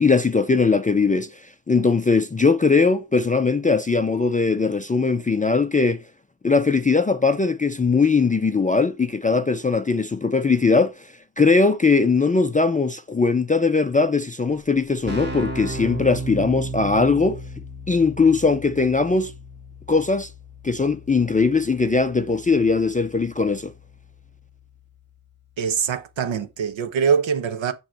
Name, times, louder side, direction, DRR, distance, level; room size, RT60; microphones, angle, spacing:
voice 1, 0.0-6.0 6.4-17.4 17.9-19.3 19.9-20.3 20.6-23.7, left 4 dB, 20° left, 0.3 m, -20 dB
Keyboard (musical), 14.5-14.6 14.8-25.4, right 1 dB, 20° right, 1.6 m, -36 dB
voice 2, 25.6-27.7, right 6 dB, 70° right, 1.0 m, -23 dB
8.8 x 3.1 x 4.4 m
wide cardioid pair, 140°, 47 cm